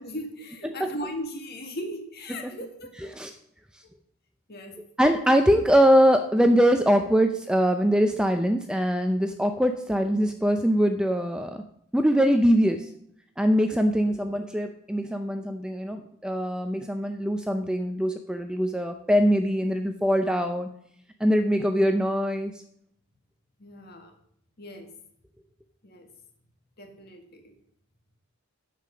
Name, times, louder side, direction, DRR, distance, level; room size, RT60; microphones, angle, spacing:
voice 1, 0.0-3.1 4.5-4.8 23.6-24.2 24.6-24.9 25.8-26.1 26.8-27.5, equal, 45° left, 4 dB, 1.9 m, -38 dB
voice 2, 0.6-0.9 2.3-2.5 3.1-3.3 5.0-11.6 11.9-12.9 13.4-20.7 21.2-22.5, equal, 5° right, 6 dB, 0.5 m, -22 dB
9.8 x 7.7 x 5.0 m, 0.69 s
head